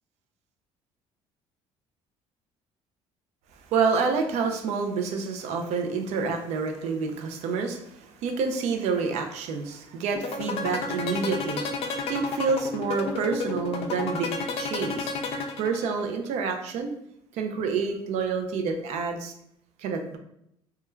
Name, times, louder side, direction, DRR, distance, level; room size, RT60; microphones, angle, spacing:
voice 1, 3.7-11.7 12.1-15.1 15.6-16.9 17.3-19.3 19.8-20.2, right 5 dB, 70° right, 5 dB, 0.4 m, -28 dB
sound 1, 10.2-16.1, left 5 dB, 55° left, 0.4 m, -31 dB
3.0 x 2.2 x 2.2 m, 0.75 s
cardioid pair, 125°, 12 cm